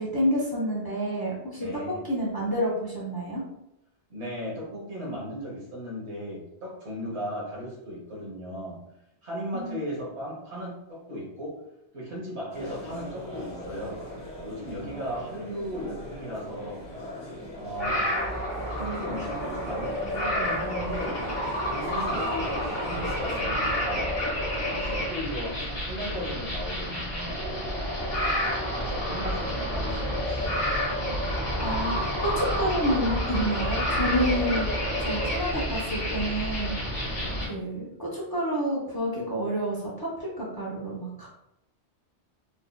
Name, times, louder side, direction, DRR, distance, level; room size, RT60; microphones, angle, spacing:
voice 1, 0.0-3.4 9.5-9.8 31.6-34.7 35.0-36.7 37.5-41.3, equal, 20° left, -6 dB, 0.8 m, -29 dB
voice 2, 1.6-2.0 4.1-8.8 9.2-11.6 11.9-14.0 14.4-16.9 17.5-18.1 18.5-21.2 21.6-24.1 24.7-27.4 28.7-30.6, equal, 75° right, -4 dB, 1.5 m, -36 dB
sound 1, 12.5-23.4, equal, 70° left, 1.7 m, -39 dB
sound 2, 17.7-37.5, equal, 45° left, 1.6 m, -29 dB
4.1 x 2.7 x 2.3 m, 0.83 s
omnidirectional pair, 1.2 m